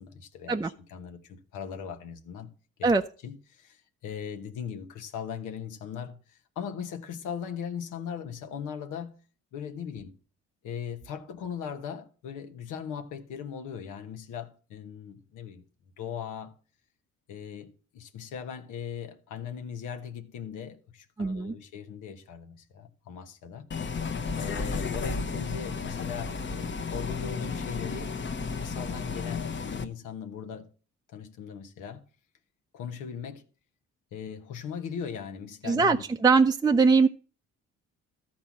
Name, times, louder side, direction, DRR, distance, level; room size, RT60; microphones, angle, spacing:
voice 1, 0.0-2.5 2.8-2.9 3.2-9.2 9.5-10.2 10.6-15.7 16.0-16.6 17.3-23.7 23.9-28.1 28.5-30.7 31.1-32.0 32.7-33.4 34.1-36.0, left 7 dB, 85° left, 1.1 m, -39 dB
voice 2, 21.2-21.5 35.6-36.0 36.2-37.1, right 4 dB, 15° right, 0.5 m, -21 dB
Bus, 23.7-29.8, left 4 dB, 40° left, 1.0 m, -33 dB
13.0 x 4.4 x 7.3 m
cardioid pair, 90°, 30 cm